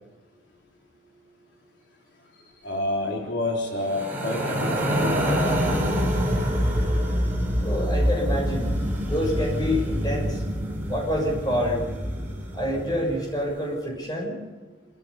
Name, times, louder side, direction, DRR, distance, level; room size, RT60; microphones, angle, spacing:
voice 1, 2.6-6.1, left 2 dB, 70° left, -1 dB, 3.9 m, -29 dB
sound 1, 3.8-13.1, equal, 10° right, 4.1 m, -26 dB
voice 2, 7.6-10.4 10.9-11.8 12.5-14.3, equal, 20° left, 0 dB, 6.5 m, -27 dB
27.5 x 14.5 x 6.9 m, 1.3 s
head